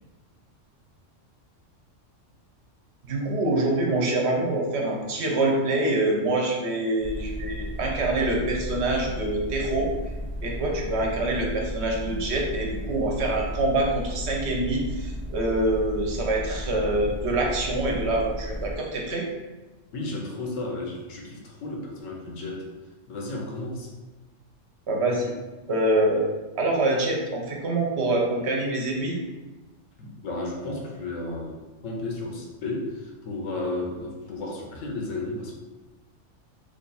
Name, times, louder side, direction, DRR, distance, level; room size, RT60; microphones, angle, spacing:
voice 1, 3.1-9.9 10.4-19.3 24.9-25.3 25.7-26.2 26.6-29.2, right 2 dB, 65° right, 0 dB, 0.9 m, -25 dB
sound 1, 7.0-18.8, equal, 15° left, 0.5 m, -34 dB
voice 2, 19.9-22.7 23.1-23.9 30.0-35.5, left 2 dB, 80° left, -1 dB, 1.1 m, -33 dB
3.2 x 2.4 x 4.0 m, 1.2 s
omnidirectional pair, 1.3 m